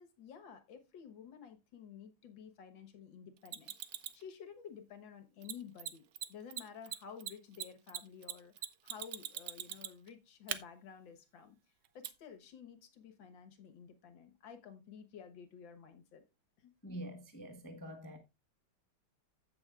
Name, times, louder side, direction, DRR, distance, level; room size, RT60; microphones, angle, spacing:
voice 1, 0.0-3.7 4.1-6.0 6.3-11.6 11.9-16.2 16.6-16.7, left 7 dB, 65° left, 2.0 m, -52 dB
Mechanisms, 3.5-4.2 5.4-5.5 5.8-5.9 6.1-6.3 6.5-10.1 10.5-10.6 12.0-12.1, right 11 dB, 65° right, 1.2 m, -40 dB
voice 2, 16.8-18.2, equal, 15° left, 0.7 m, -46 dB
15.5 x 6.3 x 2.4 m
omnidirectional pair, 2.3 m